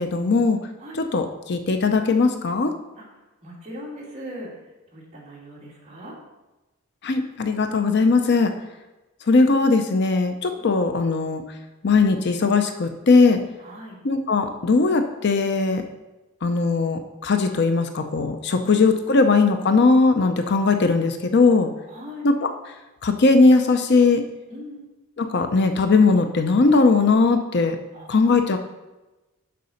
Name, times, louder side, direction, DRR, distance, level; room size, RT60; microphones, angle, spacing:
voice 1, 0.0-0.6 1.0-2.7 7.0-8.5 9.3-11.4 11.8-13.4 14.0-15.8 16.4-21.7 22.2-22.5 23.0-24.2 25.2-27.8 28.1-28.6, left 3 dB, 50° left, 7 dB, 0.6 m, -19 dB
voice 2, 3.4-4.5 4.9-6.1 13.6-14.0 21.9-22.2 24.5-24.9 27.9-28.4, equal, 30° right, -4 dB, 2.5 m, -40 dB
6.8 x 5.3 x 6.4 m, 1.1 s
head